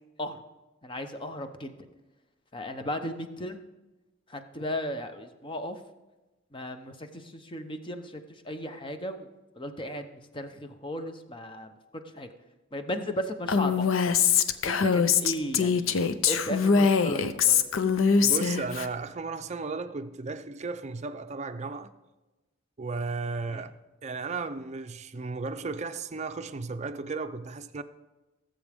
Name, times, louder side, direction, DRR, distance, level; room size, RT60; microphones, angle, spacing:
voice 1, 0.8-1.7 2.5-3.6 4.3-5.8 6.5-9.3 9.6-11.7 12.1-12.3 12.7-14.2 14.6-17.6 23.5-23.6, equal, 25° left, 0.8 m, -36 dB
Female speech woman speaking, 13.5-18.9, left 6 dB, 80° left, 0.6 m, -23 dB
voice 2, 18.2-21.9 22.8-23.7 24.0-27.8, right 4 dB, 35° right, 0.5 m, -34 dB
18.5 x 7.6 x 3.5 m
head